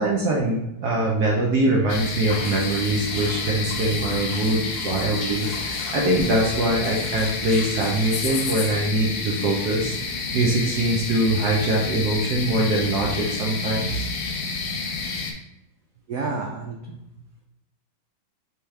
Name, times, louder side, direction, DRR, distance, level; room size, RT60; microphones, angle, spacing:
voice 1, 0.0-10.0 10.3-14.1, right 2 dB, 65° right, -2 dB, 1.1 m, -23 dB
sound 1, 1.9-15.3, left 4 dB, 80° left, 0.7 m, -30 dB
sound 2, 2.3-8.9, left 3 dB, 65° left, 1.1 m, -39 dB
voice 2, 3.7-4.0 16.1-17.2, right 4 dB, 85° right, 1 dB, 0.7 m, -32 dB
4.5 x 3.5 x 3.2 m, 0.86 s
omnidirectional pair, 2.1 m